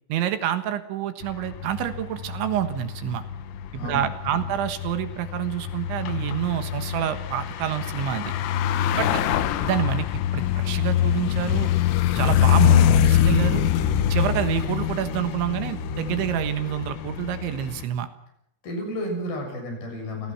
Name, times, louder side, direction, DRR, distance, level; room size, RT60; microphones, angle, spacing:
voice 1, 0.1-3.2 3.7-8.3 8.9-9.2 9.6-11.7 12.2-13.7 14.1-18.1, right 11 dB, 75° right, 9 dB, 3.5 m, -27 dB
sound 1, 1.2-17.8, left 10 dB, 85° left, 3.9 m, -24 dB
voice 2, 3.7-4.4 8.9-9.5 18.6-20.3, left 1 dB, 50° left, 3 dB, 8.5 m, -33 dB
28.5 x 19.0 x 6.0 m, 0.77 s
omnidirectional pair, 5.8 m